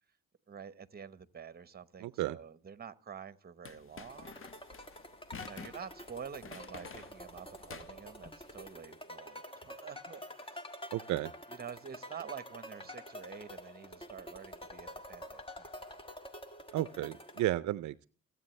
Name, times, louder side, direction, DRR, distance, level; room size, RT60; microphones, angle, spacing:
voice 1, 0.5-4.4 5.4-10.7 11.5-16.0, right 7 dB, 30° right, 1.1 m, -48 dB
voice 2, 2.0-2.4 10.9-11.3 16.7-18.1, right 15 dB, 75° right, 0.5 m, -33 dB
sound 1, 3.7-8.7, left 5 dB, 45° left, 1.1 m, -50 dB
sound 2, 4.1-17.4, equal, 20° left, 1.6 m, -48 dB
24.5 x 8.6 x 3.2 m
cardioid pair, 90°, 30 cm